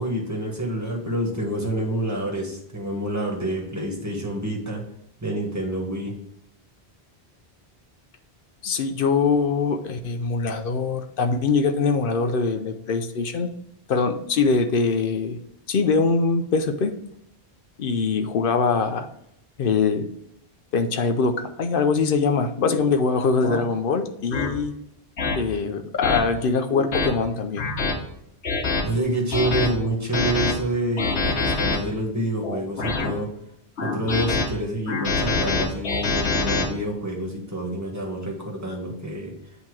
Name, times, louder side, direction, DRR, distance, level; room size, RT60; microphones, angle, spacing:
voice 1, 0.0-4.8 5.2-6.1 28.8-33.3 33.8-39.3, right 1 dB, 15° right, -1 dB, 1.4 m, -27 dB
voice 2, 8.6-13.5 13.9-15.4 15.7-16.9 17.8-19.1 19.6-20.1 20.7-24.7 25.4-27.7, left 4 dB, 60° left, 7 dB, 0.7 m, -23 dB
sound 1, 22.6-22.8 23.4-23.6 24.3-24.5 25.2-25.4 26.0-26.2 26.7-27.1 27.6-27.9 28.4-28.8 29.3-29.7 30.1-30.5 31.0-31.8 32.4-33.1 33.8-34.4 34.9-36.6, left 4 dB, 85° left, 1.3 m, -24 dB
8.2 x 2.9 x 4.7 m, 0.75 s
omnidirectional pair, 1.1 m